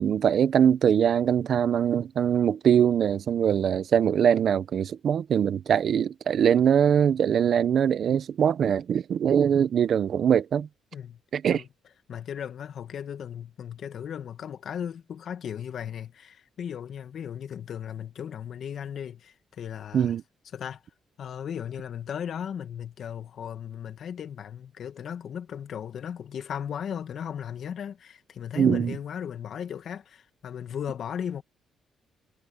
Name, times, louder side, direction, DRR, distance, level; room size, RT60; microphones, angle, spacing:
voice 1, 0.0-10.7 11.3-11.6 19.9-20.2 28.6-29.0, right 8 dB, 60° right, 0.9 m, -22 dB
voice 2, 12.1-20.1 20.5-20.8 21.2-31.4, left 8 dB, 60° left, 1.8 m, -36 dB
cardioid pair, 90°, 0 cm